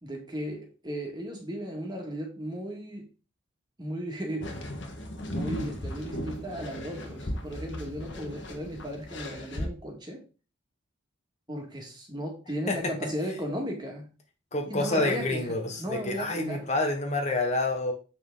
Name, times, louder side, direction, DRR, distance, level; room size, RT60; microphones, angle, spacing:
voice 1, 0.0-3.0 3.8-4.6 5.3-10.2 11.5-14.1 14.7-16.7, equal, 20° right, 2 dB, 2.0 m, -36 dB
sound 1, 4.4-9.7, equal, 60° left, 1.6 m, -36 dB
voice 2, 14.5-17.9, left 2 dB, 35° left, 4 dB, 1.2 m, -28 dB
7.8 x 5.9 x 3.9 m, 0.34 s
head